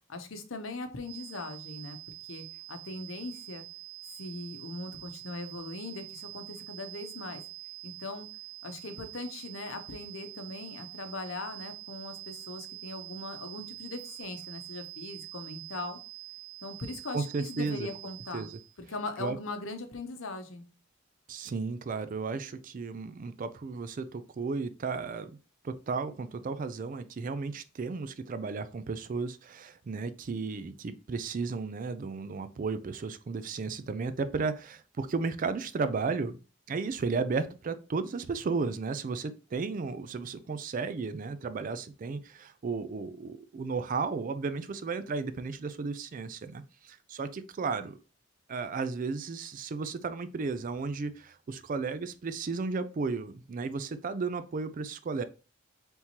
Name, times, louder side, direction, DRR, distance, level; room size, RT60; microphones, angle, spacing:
voice 1, 0.1-2.0 2.3-3.7 4.2-7.4 7.8-8.3 8.6-16.0 16.6-18.5 18.9-20.7, left 2 dB, 65° left, 7 dB, 0.8 m, -40 dB
sound 1, 1.0-18.8, right 21 dB, 75° right, 1.0 m, -46 dB
voice 2, 17.1-17.9 18.3-18.5 19.2-19.4 21.3-25.4 25.6-36.4 36.7-48.0 48.5-55.2, right 4 dB, 40° right, 12 dB, 0.3 m, -34 dB
4.3 x 3.6 x 2.9 m, 0.33 s
head